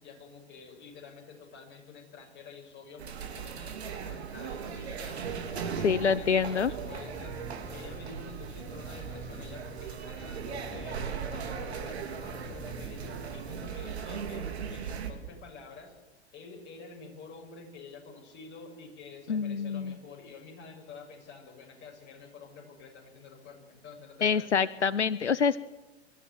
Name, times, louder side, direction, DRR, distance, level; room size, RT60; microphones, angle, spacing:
voice 1, 0.0-5.2 5.5-7.4 7.7-15.9 16.3-24.5, left 4 dB, 30° left, 2 dB, 7.1 m, -48 dB
sound 1, 3.0-15.1, right 7 dB, 70° right, 3.2 m, -38 dB
voice 2, 5.8-6.7 19.3-20.0 24.2-25.6, left 6 dB, 85° left, 18 dB, 0.7 m, -26 dB
sound 2, 6.6-13.7, left 1 dB, 5° left, 1.3 m, -47 dB
24.0 x 14.0 x 9.6 m, 1.1 s
figure-of-eight pair, 100°, 34 cm